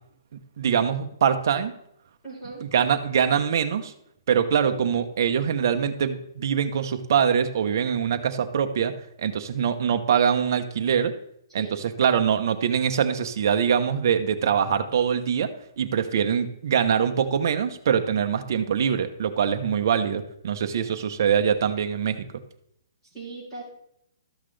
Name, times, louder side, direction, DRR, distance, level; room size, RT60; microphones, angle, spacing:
voice 1, 0.6-1.7 2.6-3.9 4.3-8.9 9.2-11.1 11.5-22.3, right 7 dB, 45° right, 7 dB, 0.8 m, -23 dB
voice 2, 2.2-2.6 11.5-11.8 20.7-21.2 23.0-23.6, right 3 dB, 10° left, -11 dB, 3.8 m, -40 dB
13.0 x 5.8 x 3.3 m, 0.75 s
hypercardioid pair, 170°, 2 cm